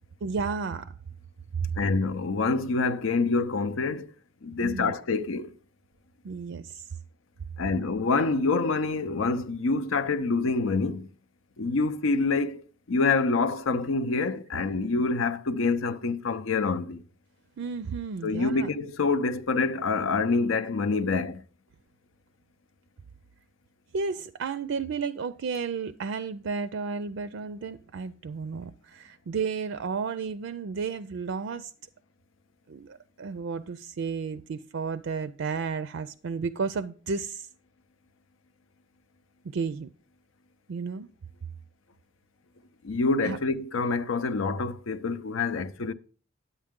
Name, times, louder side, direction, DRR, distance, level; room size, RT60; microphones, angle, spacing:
voice 1, 0.2-0.9 4.6-4.9 6.2-6.9 17.6-18.7 23.9-31.7 32.7-37.5 39.4-39.9 40.7-41.1 43.2-43.4, right 5 dB, 65° right, 0.4 m, -32 dB
voice 2, 1.8-4.1 4.4-5.5 7.6-11.1 11.6-17.0 18.2-21.4 42.8-45.9, left 3 dB, 80° left, 0.6 m, -26 dB
9.6 x 8.2 x 3.6 m
head